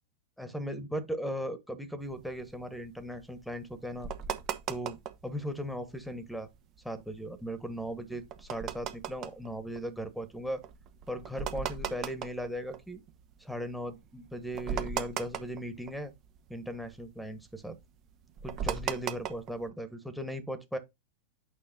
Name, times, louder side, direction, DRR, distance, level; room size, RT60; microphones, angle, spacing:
voice 1, 0.4-4.1 4.7-6.5 6.8-10.6 11.1-13.0 13.4-16.1 16.5-17.8 18.4-20.8, equal, ahead, 1.3 m, -38 dB
sound 1, 2.1-5.3 5.7-6.3 6.8-13.4 13.9-14.0 14.2-16.4 16.6-19.7, right 8 dB, 35° right, 0.8 m, -38 dB
8.8 x 5.6 x 2.7 m
figure-of-eight pair, 90°, 0 cm